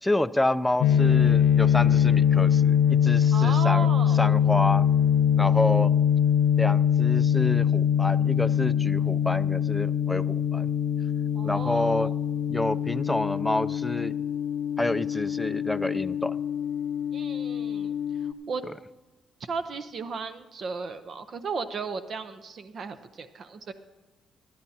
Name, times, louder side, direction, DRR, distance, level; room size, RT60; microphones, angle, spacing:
voice 1, 0.0-3.9 4.1-4.8 5.4-5.9 6.6-10.7 11.4-12.1 12.5-14.2 14.8-16.4 18.6-18.7, left 1 dB, 10° left, 13 dB, 0.4 m, -28 dB
sound 1, 0.8-18.3, left 8 dB, 85° left, 0.4 m, -23 dB
voice 2, 3.3-4.3 11.3-12.1 17.1-17.9 18.2-18.6 19.5-23.7, right 4 dB, 55° right, 10 dB, 0.6 m, -35 dB
18.0 x 12.0 x 2.8 m, 1.2 s
cardioid pair, 90°, 0 cm